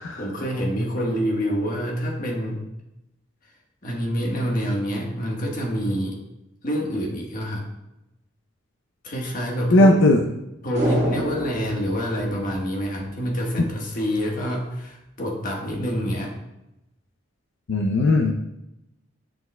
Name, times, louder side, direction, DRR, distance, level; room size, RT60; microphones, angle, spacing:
voice 1, 0.0-2.6 3.8-6.2 6.6-7.7 9.0-9.9 10.6-16.3, equal, 45° left, -1 dB, 1.3 m, -27 dB
voice 2, 9.7-10.2 17.7-18.3, left 1 dB, 80° left, 2 dB, 0.5 m, -16 dB
sound 1, 10.7-13.2 13.5-13.6, equal, 35° right, 1.9 m, -29 dB
7.0 x 6.3 x 2.2 m, 0.88 s
head